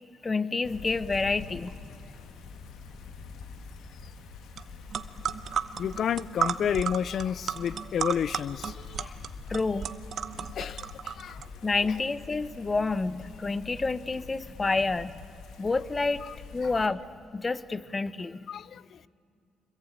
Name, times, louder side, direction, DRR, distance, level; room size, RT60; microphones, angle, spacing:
voice 1, 0.2-1.7 9.5-9.9 11.6-15.2 15.6-16.2 16.5-17.0 17.3-18.4, left 3 dB, 25° left, 1.0 m, -28 dB
sound 1, 0.6-16.9, left 5 dB, 80° left, 2.1 m, -45 dB
sound 2, 4.6-4.7 4.9-11.5, right 8 dB, 55° right, 1.0 m, -33 dB
voice 2, 5.8-9.1 10.4-11.4 16.3-16.4 18.5-19.0, left 8 dB, 60° left, 0.5 m, -31 dB
26.0 x 21.5 x 9.3 m
cardioid pair, 90°, 0 cm